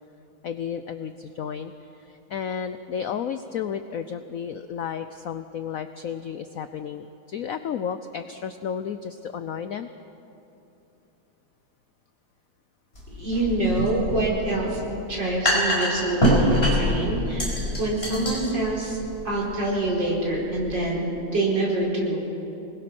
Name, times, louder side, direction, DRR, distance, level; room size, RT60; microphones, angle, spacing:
voice 1, 0.4-1.7 2.1-9.9, left 7 dB, 75° left, 10 dB, 0.8 m, -32 dB
sound 1, 12.9-20.7, equal, 30° left, 5.9 m, -26 dB
voice 2, 13.1-14.8 15.1-17.4 17.8-19.0 19.2-21.0 21.3-22.2, right 2 dB, 60° right, -4 dB, 5.5 m, -25 dB
26.0 x 20.5 x 6.0 m, 2.9 s
omnidirectional pair, 2.2 m